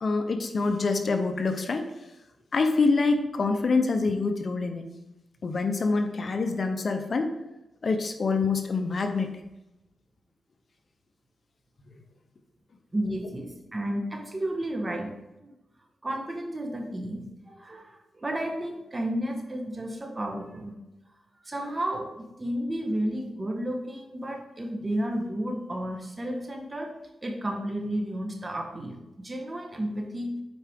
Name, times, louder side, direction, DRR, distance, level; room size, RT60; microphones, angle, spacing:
voice 1, 0.0-1.8 2.5-4.8 5.4-7.3 7.8-9.3, left 3 dB, 55° left, 6 dB, 0.8 m, -26 dB
voice 2, 12.9-15.1 15.4-15.5 16.0-20.7 21.4-26.9 27.2-30.3, right 1 dB, 30° right, 2 dB, 1.5 m, -32 dB
7.9 x 4.8 x 3.7 m, 0.97 s
cardioid pair, 70°, 0 cm